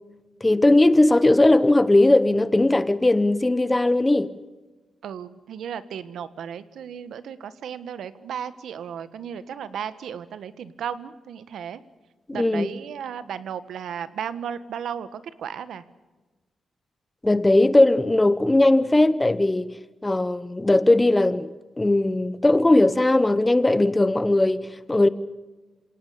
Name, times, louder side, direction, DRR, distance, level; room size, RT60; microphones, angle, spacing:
voice 1, 0.4-4.3 12.3-12.7 17.2-19.7 20.0-21.5 21.8-25.1, left 2 dB, 15° left, 0.9 m, -18 dB
voice 2, 5.0-11.8 12.3-15.8, right 8 dB, 90° right, 1.4 m, -35 dB
27.5 x 18.0 x 8.7 m
wide cardioid pair, 140°, 0 cm